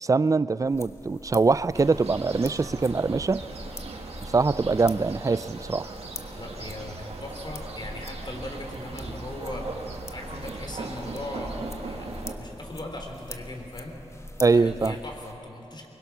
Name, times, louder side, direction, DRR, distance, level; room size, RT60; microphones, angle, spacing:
voice 1, 0.0-3.5 4.2-5.9 14.4-15.0, right 4 dB, 30° right, 18 dB, 0.4 m, -23 dB
sound 1, 0.6-15.3, left 1 dB, 25° left, 1.2 m, -43 dB
sound 2, 1.7-12.3, right 3 dB, 75° right, 1.9 m, -39 dB
voice 2, 6.4-9.7 10.1-13.9 14.5-15.9, left 1 dB, 45° left, 2 dB, 3.7 m, -39 dB
23.5 x 21.5 x 6.1 m, 2.8 s
cardioid pair, 60°, 11 cm